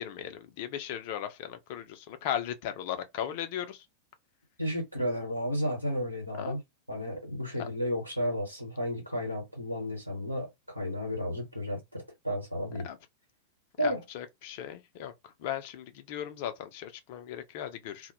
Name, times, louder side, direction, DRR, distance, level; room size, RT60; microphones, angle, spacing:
voice 1, 0.0-3.8 6.4-6.6 7.6-7.7 12.8-13.0 13.8-15.1 15.4-18.1, left 10 dB, 50° left, 0.4 m, -37 dB
voice 2, 4.6-6.6 6.9-12.9 13.8-14.0, equal, 85° right, 1.1 m, -33 dB
2.1 x 2.0 x 3.0 m
figure-of-eight pair, 90°, 0 cm